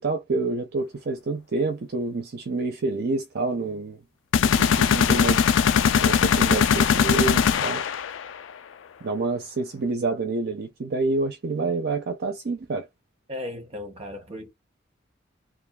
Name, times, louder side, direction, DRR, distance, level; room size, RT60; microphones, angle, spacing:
voice 1, 0.0-4.0 4.4-5.4 6.0-7.8 9.0-12.9, right 3 dB, 55° right, 0.5 m, -28 dB
sound 1, 4.3-8.3, left 7 dB, 75° left, 0.4 m, -20 dB
voice 2, 13.3-14.5, left 1 dB, 35° right, 1.0 m, -36 dB
2.6 x 2.4 x 2.3 m
head